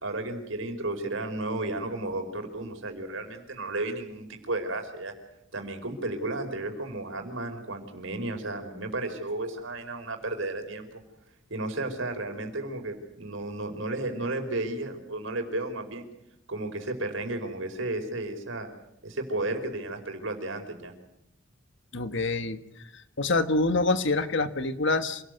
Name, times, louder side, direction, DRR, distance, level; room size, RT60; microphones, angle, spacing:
voice 1, 0.0-5.1 5.5-11.0 11.5-16.0 16.5-18.7 19.0-20.9, right 2 dB, 75° right, 5 dB, 4.9 m, -33 dB
voice 2, 21.9-22.6 23.2-25.2, left 3 dB, 65° left, 10 dB, 1.6 m, -26 dB
27.0 x 19.0 x 8.1 m, 0.81 s
head